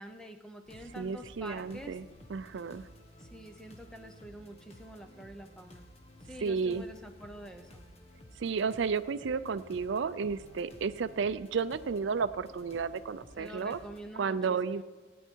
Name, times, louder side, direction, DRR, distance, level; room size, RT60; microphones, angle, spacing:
voice 1, 0.0-2.0 3.2-5.9 6.2-7.8 13.4-14.8, right 1 dB, 5° left, 6 dB, 0.7 m, -47 dB
sound 1, 0.7-14.1, left 1 dB, 30° left, 1.2 m, -54 dB
voice 2, 1.0-2.0 2.3-2.8 6.4-6.8 8.4-13.8 14.2-14.8, right 5 dB, 70° right, 14 dB, 0.4 m, -32 dB
17.5 x 9.3 x 4.5 m, 1.4 s
head